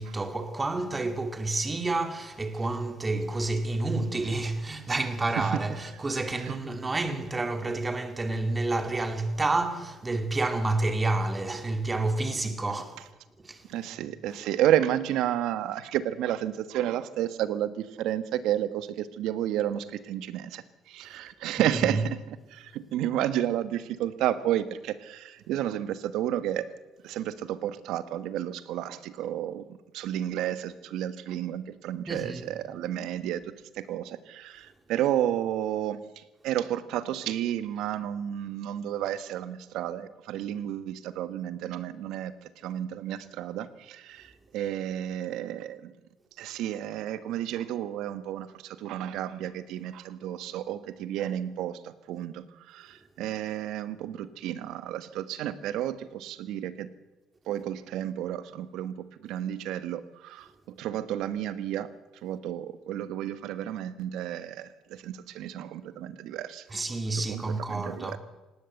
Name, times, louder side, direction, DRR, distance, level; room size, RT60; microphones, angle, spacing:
voice 1, 0.0-13.0 13.4-13.7 21.7-22.0 32.1-32.5 66.7-68.2, right 2 dB, 20° right, 2.5 m, -29 dB
voice 2, 13.7-26.7 27.0-29.6 29.9-45.9 46.4-56.9 57.5-61.9 62.2-66.7 67.3-67.4 67.7-68.2, right 11 dB, 80° right, 1.3 m, -31 dB
18.5 x 18.0 x 7.9 m
cardioid pair, 100°, 0 cm